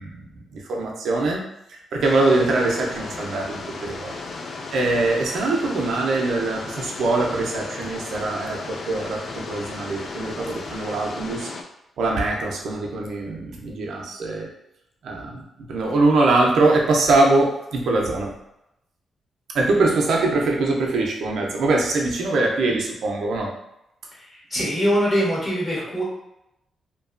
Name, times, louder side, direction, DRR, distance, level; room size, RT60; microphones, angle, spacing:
voice 1, 0.0-1.4 1.7-4.2 4.7-11.5 12.0-14.5 15.0-15.4 15.7-18.3 19.5-23.5, right 2 dB, 75° right, 0 dB, 0.5 m, -22 dB
sound 1, 2.0-11.6, left 3 dB, 60° left, 0.3 m, -35 dB
voice 2, 24.3-26.0, equal, 30° left, -6 dB, 1.3 m, -23 dB
2.7 x 2.2 x 2.4 m, 0.85 s
cardioid pair, 90°, 0 cm